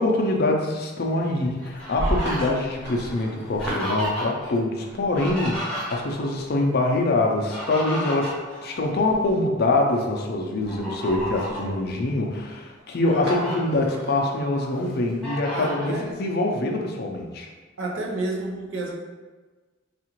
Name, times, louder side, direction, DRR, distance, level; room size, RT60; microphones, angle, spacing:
voice 1, 0.0-8.4 8.6-17.5, left 2 dB, 50° left, 1 dB, 0.4 m, -24 dB
sound 1, 0.7-0.8 1.5-1.7 2.2-5.1 5.4-5.5 6.9-7.6 8.1-8.2 8.8-8.9 13.2-14.2, right 1 dB, 55° right, 1.3 m, -41 dB
Fowl, 1.2-4.5 4.8-6.3 7.2-9.3 9.8-10.0 10.6-11.7 12.3-12.4 12.8-13.6 14.1-14.8 15.2-15.9, equal, 5° left, 0.8 m, -32 dB
voice 2, 15.5-16.1 17.8-18.9, right 2 dB, 75° right, -2 dB, 0.7 m, -30 dB
3.6 x 2.4 x 2.9 m, 1.3 s
head